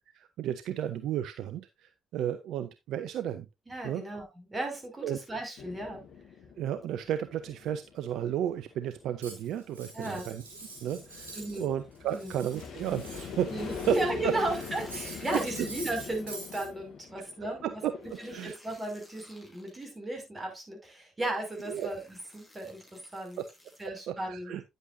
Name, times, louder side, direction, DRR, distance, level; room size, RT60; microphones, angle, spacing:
voice 1, 0.1-3.4 3.8-4.0 5.0-5.2 6.6-10.4 10.8-13.5 13.9-14.0 14.2-14.3 15.3-15.4 17.6-17.9 18.3-18.6 21.7-21.9 23.4-23.5 24.1-24.6, right 10 dB, 65° right, 0.6 m, -33 dB
voice 2, 3.7-6.0 9.9-10.3 11.3-11.7 12.1-12.3 13.5-17.8 18.2-22.8 23.1-23.4 23.8-24.6, right 1 dB, 25° right, 5.6 m, -35 dB
sound 1, 5.6-18.5, left 6 dB, 60° left, 1.8 m, -44 dB
Cutlery silverware, 9.2-11.7 12.0-14.1 14.4-16.7, right 2 dB, 85° right, 3.2 m, -45 dB
sound 2, 14.0-16.6 18.0-19.8 20.9-21.0 21.4-23.9, left 1 dB, ahead, 6.5 m, -55 dB
9.9 x 8.2 x 2.6 m
figure-of-eight pair, 45°, 0 cm